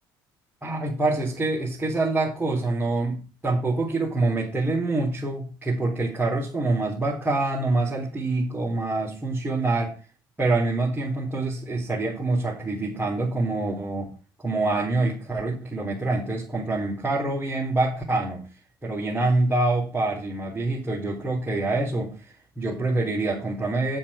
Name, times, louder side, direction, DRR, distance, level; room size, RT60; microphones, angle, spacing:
voice 1, 0.6-3.2 3.4-9.9 10.4-14.1 14.4-18.4 18.8-22.2 22.6-24.0, right 2 dB, 15° right, -5 dB, 4.1 m, -25 dB
9.3 x 7.3 x 5.2 m, 0.35 s
hypercardioid pair, 60°, 11 cm